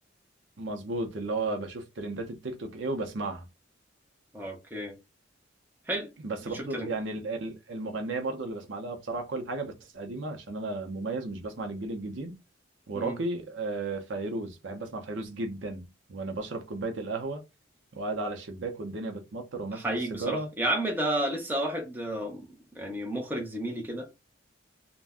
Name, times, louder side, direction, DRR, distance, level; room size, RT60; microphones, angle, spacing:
voice 1, 0.6-3.5 6.2-12.4 12.9-17.4 17.9-20.5, right 2 dB, 80° right, 0.7 m, -34 dB
voice 2, 4.3-4.9 5.9-6.1 6.5-6.9 12.9-13.2 19.7-24.1, right 1 dB, 10° right, 0.7 m, -31 dB
2.5 x 2.2 x 3.4 m
head